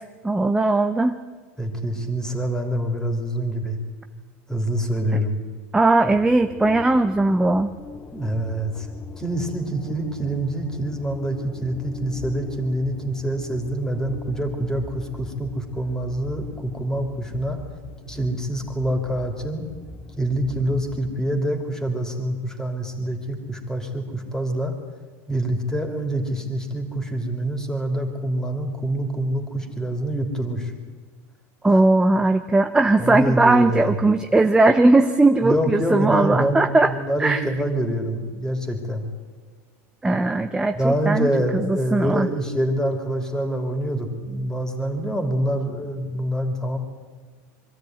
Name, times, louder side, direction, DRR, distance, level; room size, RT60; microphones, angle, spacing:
voice 1, 0.2-1.2 5.7-7.7 31.6-36.9 37.2-37.4 40.0-41.3 41.7-42.3, right 2 dB, 10° right, 7 dB, 0.7 m, -18 dB
voice 2, 1.6-3.8 4.5-5.4 8.1-8.9 9.2-17.6 18.0-19.7 20.2-24.7 25.3-30.7 31.7-31.8 33.0-33.9 35.4-39.0 40.7-46.8, right 1 dB, 10° left, 5 dB, 3.2 m, -26 dB
sound 1, 6.1-21.2, left 4 dB, 25° left, 1.8 m, -40 dB
23.0 x 13.5 x 9.4 m, 1.4 s
supercardioid pair, 130°, 8 cm